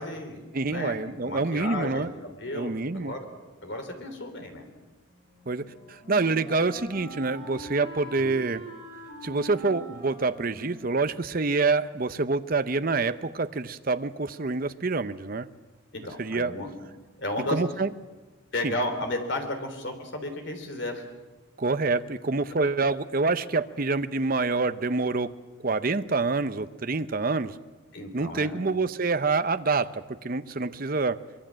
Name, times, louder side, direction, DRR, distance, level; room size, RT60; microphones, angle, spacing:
voice 1, 0.0-1.0 1.2-3.3 3.6-4.6 8.2-8.3 15.9-16.7 17.2-17.6 18.5-21.0 27.9-28.6, left 1 dB, 55° left, 6 dB, 3.5 m, -33 dB
voice 2, 0.5-2.1 2.5-3.1 5.5-8.6 9.2-15.5 16.2-16.5 17.5-17.9 18.6-18.7 21.6-25.3 25.6-27.6 28.1-31.2, right 3 dB, 40° right, 11 dB, 0.7 m, -27 dB
Wind instrument woodwind instrument, 5.1-12.0, right 1 dB, 20° left, 5.7 m, -44 dB
24.0 x 22.0 x 7.6 m, 1.2 s
head